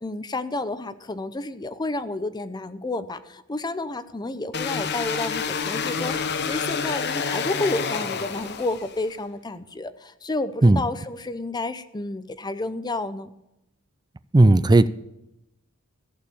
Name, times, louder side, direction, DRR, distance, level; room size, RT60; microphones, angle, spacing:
voice 1, 0.0-13.3, left 2 dB, 20° left, 12 dB, 0.6 m, -30 dB
sound 1, 4.5-9.1, left 6 dB, 55° left, 0.9 m, -28 dB
voice 2, 14.3-14.9, right 2 dB, 20° right, 15 dB, 0.4 m, -14 dB
14.5 x 6.6 x 6.8 m, 0.89 s
head